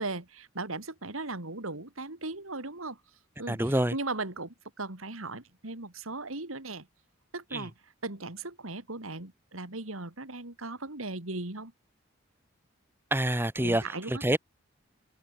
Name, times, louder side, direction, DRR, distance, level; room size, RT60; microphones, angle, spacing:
voice 1, 0.0-3.0 3.4-6.9 7.3-7.7 8.0-11.7 13.6-14.2, right 2 dB, 85° right, 3.3 m, -37 dB
voice 2, 3.5-3.9 7.5-7.7 13.1-14.4, right 1 dB, 10° right, 1.2 m, -27 dB
open air
head